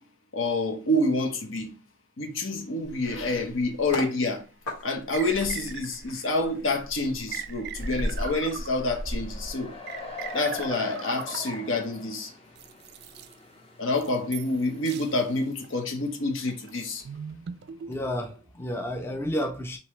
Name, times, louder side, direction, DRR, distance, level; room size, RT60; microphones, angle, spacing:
voice 1, 0.3-1.7 2.2-4.5 4.8-9.7 10.3-12.3 13.8-17.0, left 2 dB, 70° left, 1.0 m, -28 dB
sound 1, 2.8-4.1 4.7-10.2 10.6-10.8, equal, 90° left, 1.8 m, -36 dB
sound 2, 4.1-4.2 5.1-6.2 7.3-9.1 9.9-11.9 12.6-13.3 13.9-14.6 14.9-15.1 15.6-15.8 16.5-18.4, right 8 dB, 55° right, 0.4 m, -40 dB
sound 3, 7.8-15.5, left 4 dB, 30° left, 0.9 m, -43 dB
voice 2, 17.9-19.8, equal, 10° left, 0.5 m, -31 dB
5.3 x 2.8 x 3.1 m
head